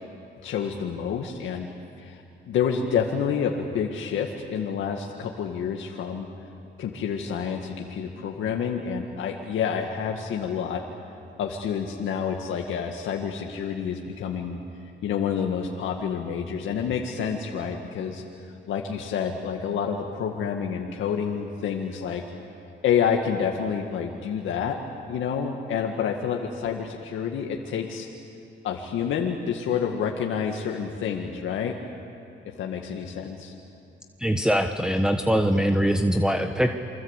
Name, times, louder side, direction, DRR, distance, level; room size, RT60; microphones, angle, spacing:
voice 1, 0.4-1.7 2.0-6.3 6.8-10.8 11.4-14.6 15.0-22.2 22.8-24.8 25.1-28.1 28.6-31.8 32.5-33.5, left 7 dB, 80° left, 1 dB, 2.0 m, -28 dB
voice 2, 34.2-36.7, equal, 5° right, 5 dB, 1.3 m, -22 dB
28.5 x 24.5 x 8.3 m, 2.6 s
cardioid pair, 90°, 20 cm